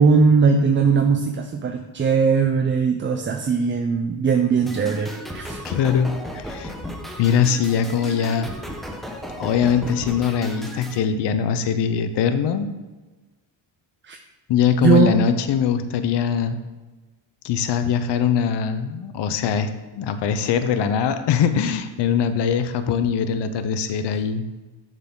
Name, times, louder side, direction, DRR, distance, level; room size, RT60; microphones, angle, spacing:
voice 1, 0.0-5.6 14.0-14.2 14.8-15.1, right 5 dB, 25° right, 4 dB, 0.4 m, -19 dB
sound 1, 4.7-11.0, equal, ahead, 0.8 m, -35 dB
voice 2, 5.6-6.7 7.2-8.5 9.4-12.7 14.5-16.6 17.4-24.4, left 7 dB, 55° left, 10 dB, 0.7 m, -22 dB
6.9 x 6.6 x 3.8 m, 1.2 s
cardioid pair, 115°, 49 cm